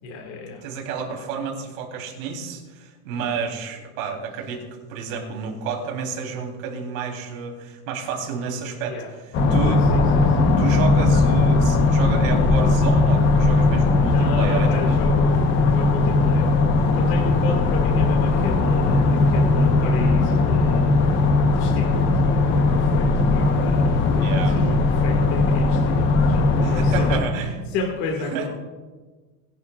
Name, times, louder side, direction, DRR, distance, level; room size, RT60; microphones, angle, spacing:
voice 1, 0.0-0.6 3.1-3.5 8.9-9.1 9.6-10.5 14.0-27.2 27.7-28.5, left 3 dB, 45° left, -1 dB, 2.1 m, -33 dB
voice 2, 0.6-4.6 4.9-8.9 9.5-9.8 10.6-15.0 24.2-24.6 26.6-27.5 28.3-28.5, right 6 dB, 65° right, 1 dB, 3.7 m, -30 dB
sound 1, 9.3-27.2, left 3 dB, 25° left, 1.1 m, -18 dB
21.0 x 11.5 x 2.5 m, 1.3 s
supercardioid pair, 170°, 44 cm